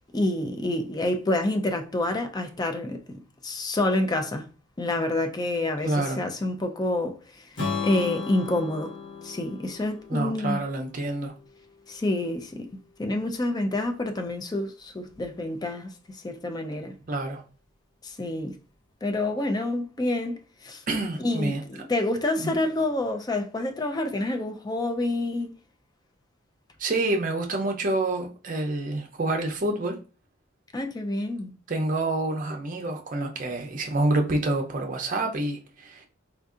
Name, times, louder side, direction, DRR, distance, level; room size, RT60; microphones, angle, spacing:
voice 1, 0.1-3.0 3.4-4.5 4.8-7.4 7.8-9.0 9.2-10.6 11.9-12.7 13.0-16.9 18.0-18.6 19.0-20.8 21.2-25.5 30.7-31.5, left 2 dB, 20° left, 0.4 m, -28 dB
voice 2, 5.8-6.2 10.1-11.3 17.1-17.4 20.9-21.6 22.4-22.6 26.8-30.0 31.7-36.0, right 2 dB, 45° right, 0.6 m, -27 dB
Strum, 7.6-11.8, left 5 dB, 70° left, 1.2 m, -35 dB
4.4 x 2.6 x 2.4 m
head